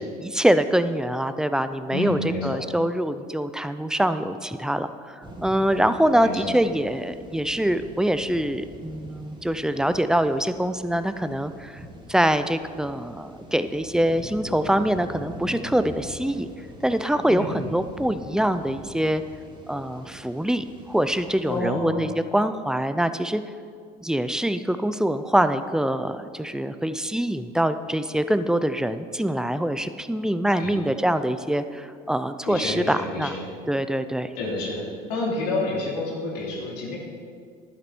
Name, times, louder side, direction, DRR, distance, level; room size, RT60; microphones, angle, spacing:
voice 1, 0.0-11.8 12.1-16.5 16.8-19.2 19.7-23.4 24.0-33.4 33.7-34.3, right 1 dB, 5° right, 11 dB, 0.5 m, -24 dB
voice 2, 1.9-2.6 6.2-6.4 17.3-17.6 21.5-22.0 30.6-30.7 32.4-33.5 34.4-34.8 35.1-37.0, left 2 dB, 85° left, -4 dB, 2.8 m, -29 dB
sound 1, 5.2-21.6, equal, 20° right, 2.6 m, -43 dB
11.5 x 9.4 x 4.6 m, 2.2 s
supercardioid pair, 75°, 21 cm